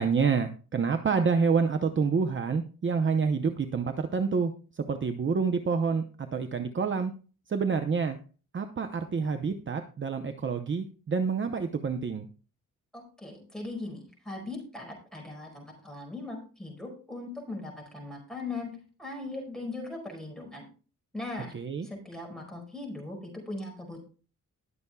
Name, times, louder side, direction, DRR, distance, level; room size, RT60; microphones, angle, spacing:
voice 1, 0.0-7.1 7.5-8.2 8.5-12.3 21.5-21.9, right 5 dB, 35° right, 7 dB, 0.7 m, -28 dB
voice 2, 12.9-18.7 19.0-20.7 21.1-21.5 21.8-24.0, left 2 dB, ahead, 0 dB, 4.8 m, -39 dB
20.5 x 6.9 x 2.3 m, 0.38 s
wide cardioid pair, 145°, 33 cm